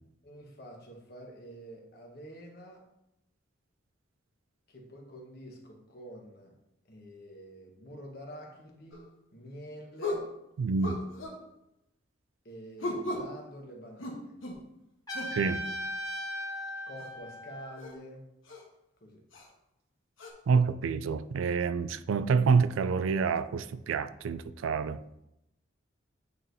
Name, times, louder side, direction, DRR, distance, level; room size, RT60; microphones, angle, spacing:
voice 1, 0.2-2.8 4.7-6.5 6.9-9.0 9.3-10.2 12.4-14.3 16.9-18.3 19.0-19.2, equal, 50° left, 0 dB, 1.3 m, -47 dB
sound 1, 8.9-9.1 10.0-10.3 10.8-11.4 12.8-13.3 14.0-14.6 15.1-15.4 17.0-17.1 17.8-17.9 18.5-18.6 19.3-19.5 20.2-20.3, left 1 dB, 85° left, 1.2 m, -36 dB
voice 2, 10.6-11.0 15.3-15.6 20.5-25.0, right 5 dB, 85° right, 14 dB, 0.3 m, -27 dB
Trumpet, 15.1-17.9, equal, 20° left, 1.4 m, -37 dB
8.7 x 4.5 x 2.7 m, 0.85 s
head